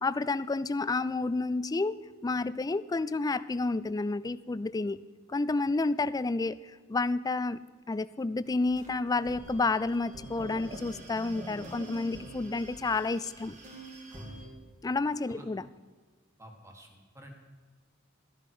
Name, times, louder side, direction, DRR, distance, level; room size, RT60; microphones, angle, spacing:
voice 1, 0.0-2.0 2.2-5.0 5.3-7.6 7.9-13.6 14.8-15.7, left 3 dB, 20° left, 16 dB, 0.3 m, -30 dB
sound 1, 8.4-14.5, right 2 dB, 35° right, 2.2 m, -46 dB
voice 2, 14.1-14.4 15.3-15.5 16.4-17.3, equal, 15° right, 2 dB, 1.9 m, -49 dB
13.5 x 11.0 x 4.9 m, 1.4 s
head